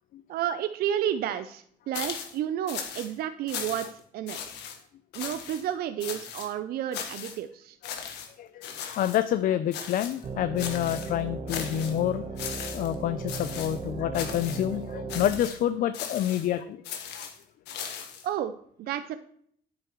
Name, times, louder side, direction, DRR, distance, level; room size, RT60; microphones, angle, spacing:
voice 1, 0.3-4.4 5.1-7.8 18.2-18.5 18.8-19.2, right 10 dB, 65° right, 11 dB, 0.5 m, -31 dB
sound 1, 1.9-2.4 2.7-3.1 3.5-4.0 4.3-4.8 5.1-5.6 6.0-6.5 6.9-7.4 7.8-8.3 8.6-9.2 9.7-10.2 10.6-11.1 11.5-12.0 12.4-12.9 13.3-13.8 14.1-14.7 15.1-15.6 15.9-16.5 16.8-18.3, left 8 dB, 85° left, 1.4 m, -37 dB
voice 2, 8.4-12.2 12.7-16.8 17.2-17.3, left 11 dB, 55° left, 12 dB, 0.4 m, -28 dB
sound 2, 10.2-15.4, right 4 dB, 35° right, 1.1 m, -36 dB
9.5 x 8.6 x 3.1 m, 0.64 s
cardioid pair, 110°, 17 cm